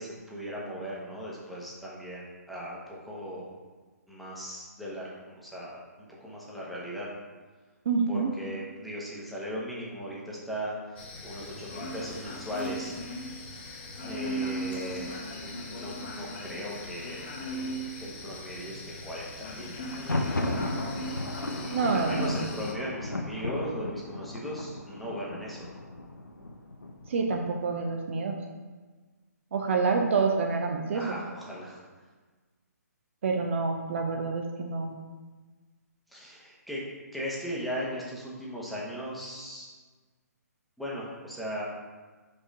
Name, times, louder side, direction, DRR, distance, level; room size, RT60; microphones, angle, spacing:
voice 1, 0.0-2.8 3.1-3.5 4.1-7.1 8.1-10.7 11.2-12.9 14.0-15.1 15.6-17.2 17.9-19.8 20.3-20.7 21.9-25.7 30.9-31.8 36.1-36.9 37.1-39.7 40.8-41.7, equal, ahead, -6 dB, 1.0 m, -38 dB
voice 2, 7.9-8.3 21.7-22.4 27.1-28.4 29.5-31.0 33.2-34.9, right 4 dB, 45° right, 2 dB, 0.6 m, -27 dB
sound 1, 11.0-22.7, equal, 35° left, 0.8 m, -38 dB
Thunder, 19.8-27.6, left 2 dB, 90° left, 0.7 m, -35 dB
5.3 x 3.6 x 5.3 m, 1.3 s
figure-of-eight pair, 135°, 9 cm